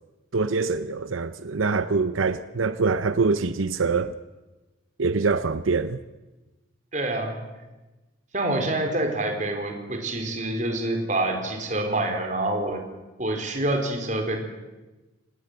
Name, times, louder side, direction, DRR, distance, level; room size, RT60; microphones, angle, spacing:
voice 1, 0.3-4.1 5.0-6.0, right 4 dB, 90° right, 0.8 m, -24 dB
voice 2, 6.9-7.4 8.3-12.8 13.2-14.4, right 1 dB, 40° right, 4.2 m, -26 dB
26.0 x 19.0 x 8.0 m
head